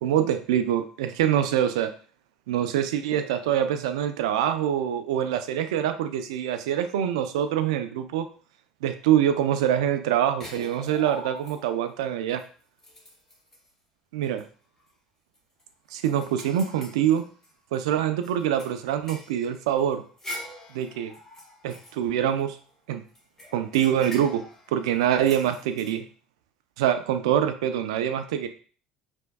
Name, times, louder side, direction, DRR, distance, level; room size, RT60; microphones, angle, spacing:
voice 1, 0.0-1.9 2.5-8.3 8.8-12.4 14.1-14.4 15.9-17.2 17.7-20.0 20.7-21.1 21.6-22.6 22.9-23.0 23.5-24.4 24.7-26.0 26.8-28.5, right 10 dB, 80° right, 9 dB, 0.4 m, -25 dB
sound 1, 10.4-11.9 12.4-12.5 12.8-13.7 14.2-14.4 14.8-14.9 15.3-17.8 18.2-22.7 23.1-25.9, left 1 dB, 15° left, 2.0 m, -43 dB
4.9 x 3.4 x 2.3 m, 0.41 s
hypercardioid pair, 70°, 3 cm